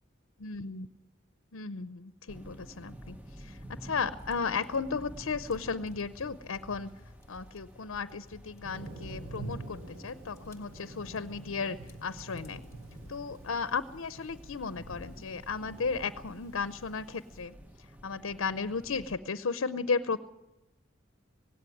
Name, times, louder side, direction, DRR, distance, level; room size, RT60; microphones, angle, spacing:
voice 1, 0.4-0.9 1.5-6.9 7.3-12.6 13.1-20.2, left 5 dB, 85° left, 14 dB, 0.7 m, -35 dB
sound 1, 2.3-19.2, equal, 10° right, 1.1 m, -52 dB
sound 2, 4.2-13.5, left 1 dB, 15° left, 1.5 m, -55 dB
Thunder, 8.6-17.4, right 2 dB, 85° right, 6.2 m, -47 dB
17.5 x 17.0 x 9.8 m, 0.99 s
head